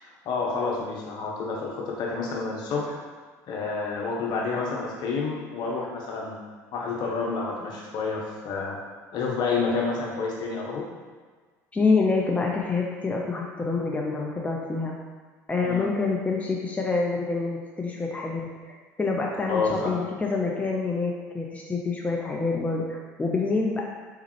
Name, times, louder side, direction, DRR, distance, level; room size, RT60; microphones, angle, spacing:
voice 1, 0.0-3.0 3.5-6.4 6.7-8.8 9.1-10.9 15.6-15.9 19.5-20.0, left 4 dB, 55° left, -2 dB, 1.0 m, -29 dB
voice 2, 11.7-14.9 15.5-18.5 19.0-23.8, left 4 dB, 15° left, -1 dB, 0.6 m, -26 dB
4.1 x 3.6 x 3.2 m, 1.4 s
hypercardioid pair, 70°, 9 cm